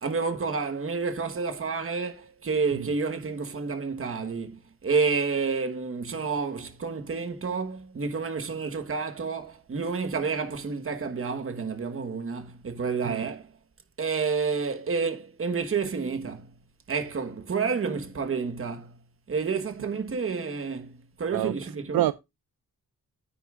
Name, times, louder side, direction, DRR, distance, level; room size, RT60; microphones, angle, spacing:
voice 1, 0.0-13.5 14.0-16.5 16.9-19.0 19.3-22.0, right 5 dB, 35° right, 1.3 m, -29 dB
voice 2, 2.7-2.9 13.0-13.3 21.3-21.5 21.9-22.1, right 14 dB, 75° right, 0.5 m, -26 dB
9.8 x 9.0 x 2.4 m
wide cardioid pair, 165°, 36 cm